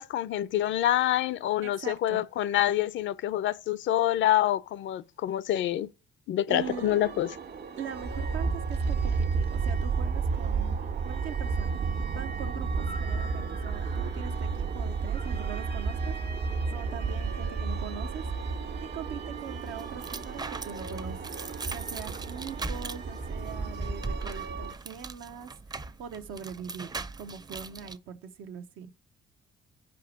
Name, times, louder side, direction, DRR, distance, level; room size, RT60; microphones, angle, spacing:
voice 1, 0.0-5.9 6.3-7.3, left 13 dB, 75° left, 0.5 m, -27 dB
voice 2, 1.6-2.2 6.5-7.0 7.8-11.8 12.1-16.4 16.7-18.2 18.9-21.3 21.7-26.9 27.2-28.9, right 7 dB, 90° right, 0.9 m, -42 dB
sound 1, 6.6-24.7, right 5 dB, 55° right, 1.4 m, -32 dB
sound 2, 19.4-28.0, right 3 dB, 20° right, 0.5 m, -39 dB
5.1 x 4.6 x 6.2 m
cardioid pair, 90°, 20 cm